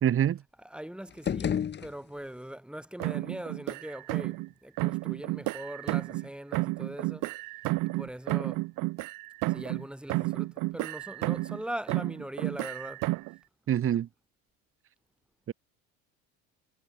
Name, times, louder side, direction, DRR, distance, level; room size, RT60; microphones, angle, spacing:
voice 1, 0.0-0.4 13.7-14.1 15.5-15.6, right 10 dB, 35° right, 1.4 m, -25 dB
voice 2, 0.6-7.3 7.8-8.7 9.5-13.2, right 1 dB, 5° right, 3.5 m, -41 dB
sound 1, 1.1-2.5, left 8 dB, 30° left, 1.2 m, -32 dB
sound 2, 3.0-4.5 4.8-6.3 6.5-9.8 10.1-11.6 11.9-13.4, right 22 dB, 60° right, 0.7 m, -31 dB
cardioid pair, 120°, 36 cm